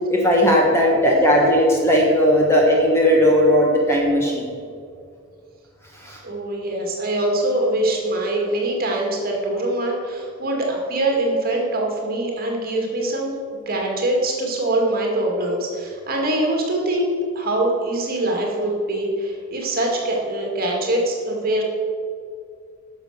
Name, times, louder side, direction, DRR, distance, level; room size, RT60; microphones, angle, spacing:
voice 1, 0.1-4.5 6.0-6.2, equal, 10° left, -2 dB, 1.4 m, -17 dB
voice 2, 6.2-13.3 13.7-21.6, right 1 dB, 40° right, -1 dB, 2.2 m, -23 dB
11.0 x 6.4 x 6.6 m, 2.3 s
head